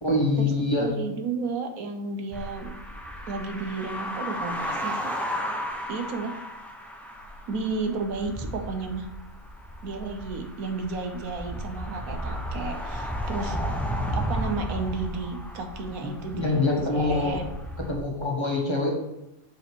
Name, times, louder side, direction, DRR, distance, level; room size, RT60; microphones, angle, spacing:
voice 1, 0.0-0.9 16.0-17.4 17.8-18.9, left 2 dB, 20° left, -2 dB, 1.4 m, -25 dB
voice 2, 0.8-2.7 3.3-5.1 5.9-6.3 7.5-9.1 9.8-13.6 14.1-16.6 16.9-17.4, right 4 dB, 80° right, 5 dB, 1.3 m, -32 dB
sound 1, 2.3-18.0, equal, ahead, 0.7 m, -34 dB
7.1 x 5.1 x 4.5 m, 0.89 s
omnidirectional pair, 1.5 m